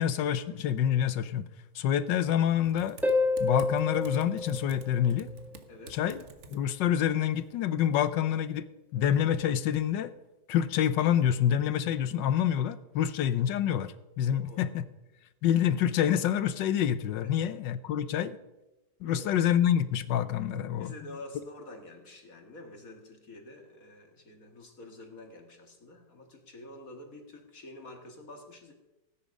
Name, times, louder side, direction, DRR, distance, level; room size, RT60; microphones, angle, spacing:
voice 1, 0.0-1.4 1.7-3.0 3.4-5.3 5.9-6.2 6.5-10.1 10.5-14.8 15.4-18.4 19.0-20.9, left 10 dB, 85° left, 14 dB, 1.4 m, -27 dB
Typing, 2.6-7.6, right 3 dB, 45° right, 1.3 m, -51 dB
Harp, 3.0-5.5 9.0-9.1, left 3 dB, ahead, 1.2 m, -29 dB
voice 2, 5.7-6.0 14.2-14.8 17.2-17.3 19.0-19.3 20.8-28.7, left 1 dB, 50° left, 3 dB, 2.3 m, -48 dB
17.0 x 9.9 x 5.3 m, 0.97 s
omnidirectional pair, 1.9 m